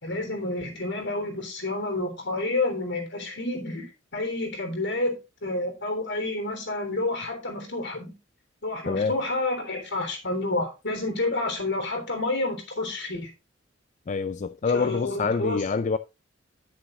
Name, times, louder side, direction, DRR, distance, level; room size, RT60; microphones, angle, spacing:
voice 1, 0.0-8.1 8.6-13.3 14.6-15.7, left 2 dB, 60° left, 3.3 m, -29 dB
voice 2, 14.1-16.0, left 4 dB, 35° left, 0.4 m, -26 dB
11.5 x 6.4 x 3.7 m
head